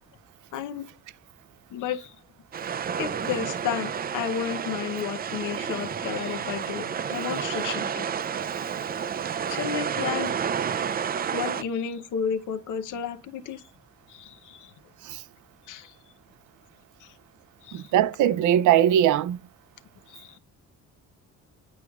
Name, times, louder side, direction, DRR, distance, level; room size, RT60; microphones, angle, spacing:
voice 1, 0.5-0.9 1.7-2.1 3.0-8.1 9.5-10.3 11.3-13.6 14.1-14.7 15.7-16.0 17.0-17.1 17.6-17.9 20.1-20.4, left 8 dB, 80° left, 0.8 m, -32 dB
sound 1, 2.5-11.6, right 7 dB, 30° right, 0.4 m, -30 dB
voice 2, 17.7-19.4, right 11 dB, 80° right, 0.5 m, -21 dB
9.3 x 4.7 x 2.3 m
cardioid pair, 90°, 30 cm